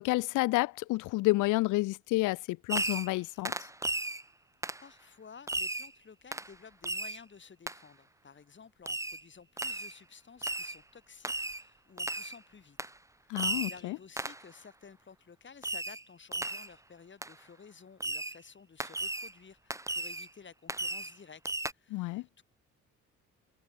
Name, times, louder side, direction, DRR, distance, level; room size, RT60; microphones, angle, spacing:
voice 1, 0.0-3.5 13.3-14.0 21.9-22.3, left 20 dB, 90° left, 0.5 m, -30 dB
Fireworks, 2.7-3.2 3.4-4.2 4.6-4.8 5.5-5.9 6.3-6.5 6.8-7.2 7.7-7.8 8.9-9.2 9.6-9.9 10.4-10.8 11.2-11.6 12.0-12.4 12.8-12.9 13.4-13.8 14.2-14.4 15.6-16.0 16.3-16.7 17.2-17.3 18.0-18.4 18.8-19.3 19.7-20.3 20.7-21.1 21.4-21.7, right 2 dB, 10° right, 1.3 m, -35 dB
voice 2, 4.8-12.8 13.3-21.4 21.7-22.4, left 6 dB, 40° left, 4.5 m, -54 dB
cardioid pair, 90°, 30 cm